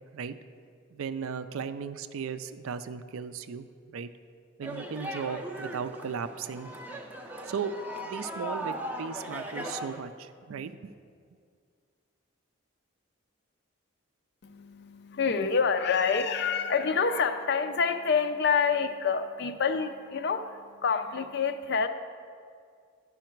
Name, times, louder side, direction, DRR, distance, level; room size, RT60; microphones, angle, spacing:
voice 1, 0.9-4.1 4.6-6.7 7.5-7.7 8.0-10.9, right 6 dB, 75° right, 12 dB, 0.4 m, -36 dB
sound 1, 4.6-10.0, right 1 dB, 10° right, 0.4 m, -38 dB
voice 2, 14.4-21.9, left 5 dB, 50° left, 9 dB, 0.4 m, -27 dB
10.5 x 5.7 x 4.5 m, 2.2 s
head